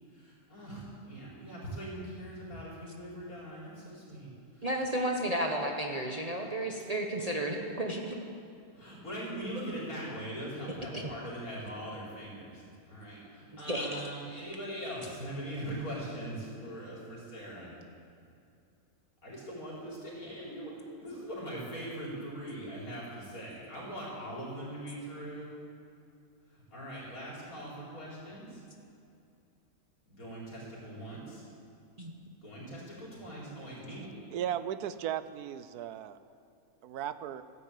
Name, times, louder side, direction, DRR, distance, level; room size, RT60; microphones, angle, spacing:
voice 1, 0.1-4.3 4.6-4.7 8.7-17.7 19.2-20.7 21.0-25.5 26.5-28.6 30.1-31.4 32.4-34.1, right 1 dB, 65° left, -6 dB, 5.2 m, -41 dB
voice 2, 4.6-8.1 10.9-11.1 13.5-14.0 32.0-32.1, right 1 dB, 25° right, 1 dB, 1.1 m, -33 dB
voice 3, 34.3-36.2 36.8-37.4, right 10 dB, 85° right, 13 dB, 1.2 m, -36 dB
14.0 x 11.0 x 8.4 m, 2.5 s
omnidirectional pair, 1.6 m